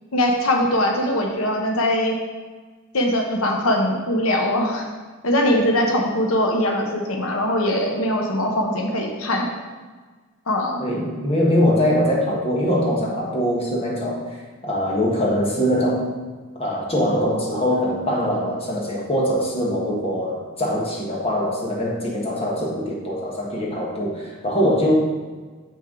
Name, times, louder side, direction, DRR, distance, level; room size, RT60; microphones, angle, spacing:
voice 1, 0.1-2.2 2.9-4.9 5.2-9.5 10.5-10.8, left 1 dB, 85° left, 1 dB, 1.0 m, -21 dB
voice 2, 10.8-14.4 14.6-16.1 16.6-24.9, equal, 30° left, -3 dB, 1.3 m, -22 dB
7.1 x 6.2 x 3.8 m, 1.4 s
head